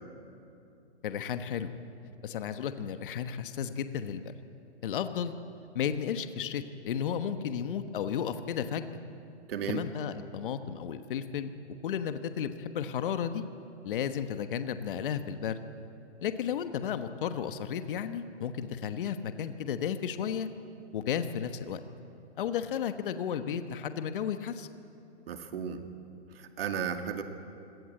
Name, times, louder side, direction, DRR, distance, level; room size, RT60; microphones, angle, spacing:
voice 1, 1.0-1.7 2.2-4.3 4.8-5.3 5.7-8.9 9.7-11.5 11.8-13.4 13.8-15.6 16.2-20.5 20.9-21.8 22.4-24.7, left 8 dB, 50° left, 10 dB, 1.3 m, -33 dB
voice 2, 9.5-9.8 25.3-25.8 26.3-27.2, right 7 dB, 55° right, 7 dB, 2.2 m, -34 dB
25.5 x 17.5 x 7.8 m, 2.7 s
hypercardioid pair, 155°, 35 cm